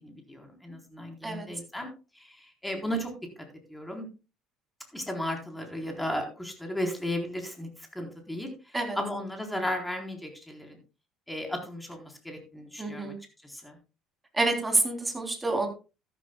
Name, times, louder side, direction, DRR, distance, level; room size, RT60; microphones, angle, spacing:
voice 1, 0.0-1.9 2.1-3.1 3.4-4.1 4.9-10.8 11.3-13.1 13.4-13.8, left 1 dB, 5° left, 3 dB, 4.0 m, -35 dB
voice 2, 12.8-13.2 14.3-15.7, right 2 dB, 15° right, 4 dB, 3.4 m, -27 dB
13.5 x 12.5 x 2.3 m, 0.31 s
figure-of-eight pair, 55°, 0 cm